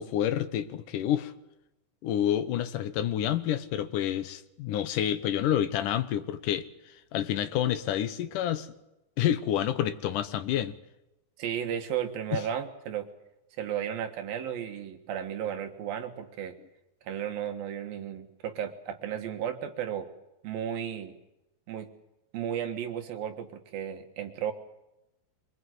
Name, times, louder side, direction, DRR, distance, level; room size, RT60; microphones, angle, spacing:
voice 1, 0.0-1.3 2.0-8.7 9.2-10.8 12.3-12.4, left 11 dB, 70° left, 11 dB, 2.2 m, -29 dB
voice 2, 11.4-13.1 13.6-16.6 17.0-20.1 20.4-21.2 21.7-21.9 22.3-24.5, right 9 dB, 70° right, 6 dB, 3.2 m, -34 dB
24.5 x 21.0 x 7.9 m, 0.94 s
omnidirectional pair, 4.5 m